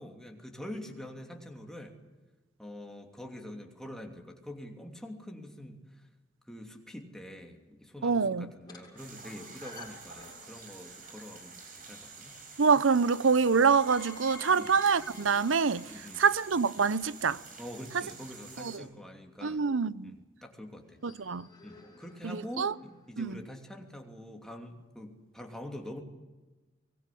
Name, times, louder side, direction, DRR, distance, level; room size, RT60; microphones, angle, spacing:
voice 1, 0.0-1.9 2.6-6.0 6.5-12.3 14.5-14.7 15.9-16.2 17.6-19.6 20.0-21.0 21.6-26.0, left 1 dB, 5° left, 2.9 m, -45 dB
voice 2, 8.0-8.5 12.6-17.4 17.9-18.0 18.6-18.8 19.4-20.1 21.0-21.5 22.2-22.7 23.2-23.4, right 5 dB, 90° right, 0.7 m, -26 dB
sound 1, 8.6-11.0 13.2-17.2 20.8-23.1, left 3 dB, 20° left, 7.1 m, -52 dB
sound 2, 9.0-18.8, right 4 dB, 45° right, 5.3 m, -49 dB
24.0 x 20.5 x 8.4 m
head